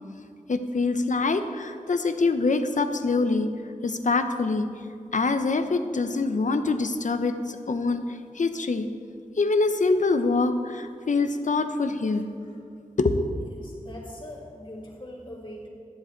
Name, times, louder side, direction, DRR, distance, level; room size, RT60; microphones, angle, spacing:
voice 1, 0.5-3.5 3.8-4.7 5.1-8.0 8.3-8.9 9.4-12.3 13.0-13.3, left 3 dB, 65° left, 8 dB, 0.8 m, -24 dB
voice 2, 12.1-12.6 13.6-15.7, left 1 dB, 35° left, -4 dB, 3.0 m, -42 dB
11.5 x 10.5 x 4.6 m, 2.5 s
wide cardioid pair, 65°, 14 cm